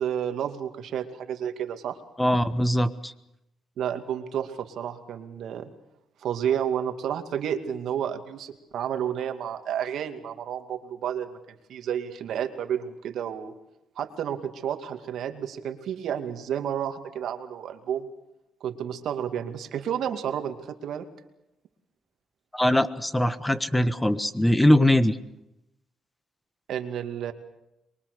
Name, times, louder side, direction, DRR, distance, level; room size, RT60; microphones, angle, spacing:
voice 1, 0.0-2.0 3.8-5.7 6.2-11.3 11.7-13.5 14.0-18.1 18.6-21.1 26.7-27.3, right 9 dB, 75° right, 7 dB, 2.3 m, -31 dB
voice 2, 2.2-3.1 22.5-25.2, left 1 dB, 10° left, 12 dB, 1.4 m, -21 dB
25.0 x 22.5 x 6.8 m, 0.87 s
cardioid pair, 90°, 0 cm